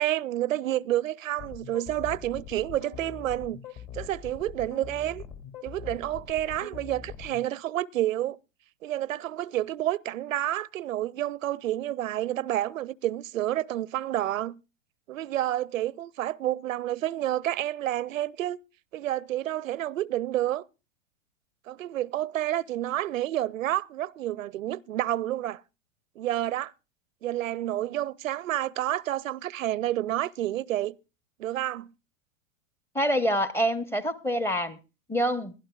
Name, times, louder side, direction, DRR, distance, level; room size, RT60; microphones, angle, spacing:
voice 1, 0.0-3.6 3.9-5.2 5.6-8.4 8.8-14.6 15.1-18.6 18.9-20.6 21.7-25.6 26.2-26.7 27.2-30.9 31.4-31.9, right 13 dB, 80° right, 0.5 m, -29 dB
sound 1, 1.4-7.4, left 9 dB, 45° left, 2.6 m, -42 dB
voice 2, 32.9-34.8 35.1-35.5, equal, 5° left, 0.7 m, -26 dB
22.5 x 12.0 x 2.3 m
hypercardioid pair, 105°, 39 cm